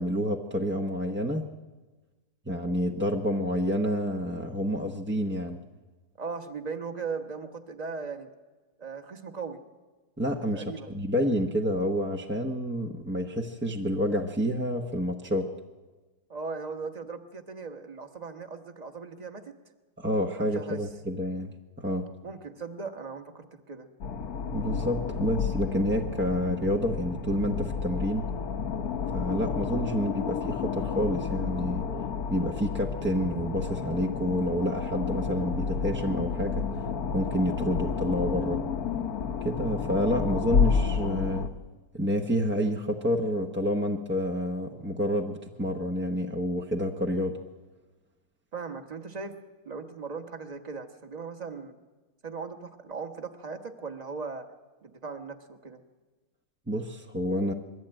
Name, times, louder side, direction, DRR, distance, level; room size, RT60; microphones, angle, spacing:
voice 1, 0.0-1.5 2.5-5.6 10.2-15.5 20.0-22.1 24.5-28.3 29.1-31.8 32.3-36.6 37.1-38.6 39.4-41.5 41.9-47.4 56.7-57.5, equal, 10° right, 2 dB, 0.6 m, -29 dB
voice 2, 6.2-8.3 8.8-9.6 10.5-10.9 16.3-19.5 20.4-20.8 22.2-23.9 48.5-49.3 49.6-51.7 52.2-54.5 54.8-55.8, right 4 dB, 25° right, 6 dB, 1.2 m, -38 dB
sound 1, 24.0-41.5, left 6 dB, 60° left, 1.4 m, -31 dB
22.0 x 14.0 x 9.0 m, 1.2 s
omnidirectional pair, 1.9 m